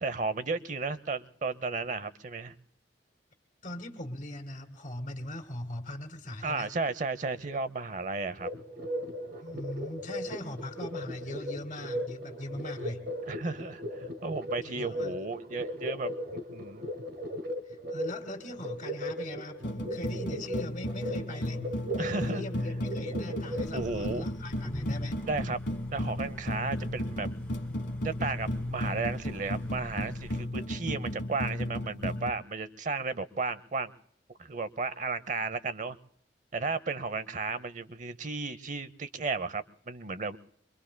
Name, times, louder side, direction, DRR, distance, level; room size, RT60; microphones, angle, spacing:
voice 1, 0.0-2.5 6.4-8.5 13.2-16.9 22.0-22.4 23.7-24.3 25.3-25.6 25.9-27.3 28.0-33.9 34.4-36.0 36.5-40.4, right 3 dB, 45° right, 14 dB, 0.7 m, -34 dB
voice 2, 3.6-6.7 9.4-13.1 14.6-15.2 17.7-21.6 22.0-25.2, left 1 dB, 50° left, 3 dB, 2.0 m, -40 dB
sound 1, 8.4-23.7, equal, 65° right, 2.1 m, -37 dB
sound 2, 19.6-32.3, left 1 dB, 75° left, 1.2 m, -34 dB
sound 3, 23.5-30.5, equal, 10° left, 1.3 m, -45 dB
26.0 x 23.0 x 2.2 m, 0.68 s
head